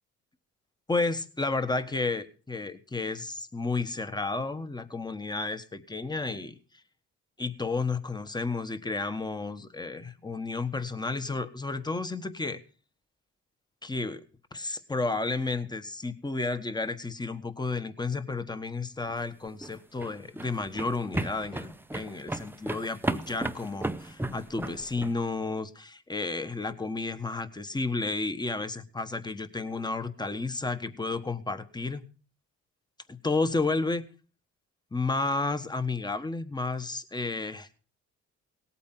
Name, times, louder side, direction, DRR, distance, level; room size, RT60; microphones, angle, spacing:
voice 1, 0.9-6.6 7.4-12.6 13.8-14.2 14.5-32.0 33.1-34.1 34.9-37.8, left 3 dB, 15° left, 11 dB, 1.3 m, -32 dB
sound 1, 19.5-25.1, right 1 dB, 5° right, 0.8 m, -34 dB
18.0 x 8.4 x 5.8 m, 0.39 s
cardioid pair, 90°, 30 cm